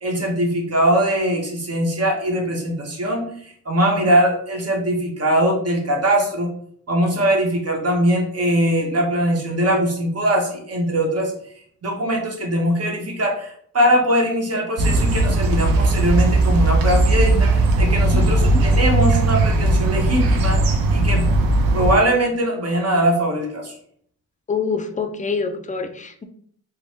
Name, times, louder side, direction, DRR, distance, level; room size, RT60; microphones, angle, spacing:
voice 1, 0.0-6.5 6.9-11.3 11.8-21.3 21.7-23.7, equal, 45° right, 0 dB, 1.1 m, -21 dB
sound 1, 14.8-21.9, right 2 dB, 75° right, 0.6 m, -17 dB
voice 2, 18.1-18.6 24.5-26.3, left 5 dB, 20° left, 7 dB, 0.4 m, -26 dB
2.5 x 2.2 x 3.4 m, 0.63 s
supercardioid pair, 55°, 36 cm